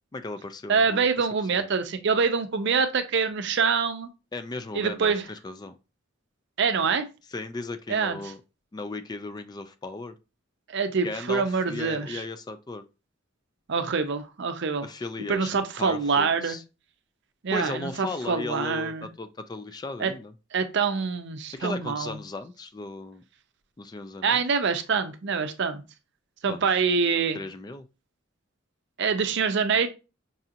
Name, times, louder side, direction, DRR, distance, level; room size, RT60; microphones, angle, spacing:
voice 1, 0.1-1.3 1.6-1.7 4.3-5.8 7.3-8.4 8.7-10.1 11.0-12.8 14.8-16.6 17.5-20.3 21.5-23.2 23.8-24.4 26.5-26.8 27.3-27.8, left 2 dB, 20° left, 0.3 m, -36 dB
voice 2, 0.7-4.1 4.7-5.3 6.6-7.0 7.9-8.2 10.7-12.2 13.7-14.9 15.3-16.6 17.4-19.1 20.0-20.1 20.5-22.2 24.2-25.8 26.4-27.4 29.0-29.9, right 5 dB, 60° right, 0.5 m, -25 dB
5.3 x 2.8 x 2.5 m
head